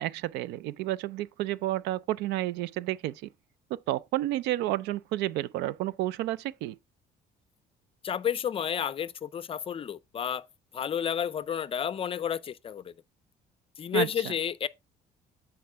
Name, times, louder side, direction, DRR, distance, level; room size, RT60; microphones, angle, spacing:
voice 1, 0.0-3.3 3.7-6.8 13.9-14.3, right 15 dB, 90° right, 0.4 m, -31 dB
voice 2, 8.0-10.5 10.7-12.9 13.8-14.7, left 8 dB, 35° left, 0.4 m, -31 dB
8.5 x 4.4 x 3.4 m
cardioid pair, 110°, 17 cm